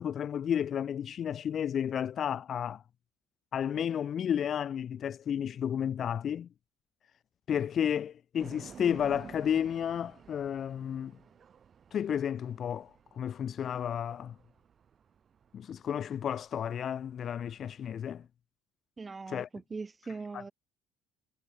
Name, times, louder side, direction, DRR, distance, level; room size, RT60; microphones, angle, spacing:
voice 1, 0.0-2.8 3.5-6.5 7.5-11.1 11.9-14.3 15.5-18.3 19.3-19.5, left 9 dB, 45° left, 0.9 m, -32 dB
sound 1, 8.4-18.2, right 7 dB, 40° right, 3.0 m, -53 dB
voice 2, 19.0-20.5, right 4 dB, 20° right, 4.4 m, -41 dB
supercardioid pair, 100°, 0 cm